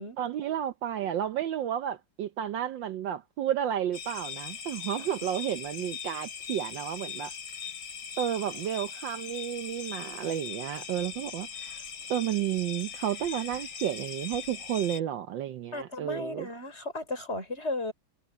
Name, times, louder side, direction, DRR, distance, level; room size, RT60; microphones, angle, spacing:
voice 1, 0.2-7.3 8.2-11.8 12.1-16.5, right 10 dB, 70° right, 1.4 m, -32 dB
sound 1, 3.9-15.0, left 7 dB, 65° left, 3.8 m, -40 dB
voice 2, 15.7-17.9, left 2 dB, 30° left, 4.7 m, -35 dB
omnidirectional pair, 2.3 m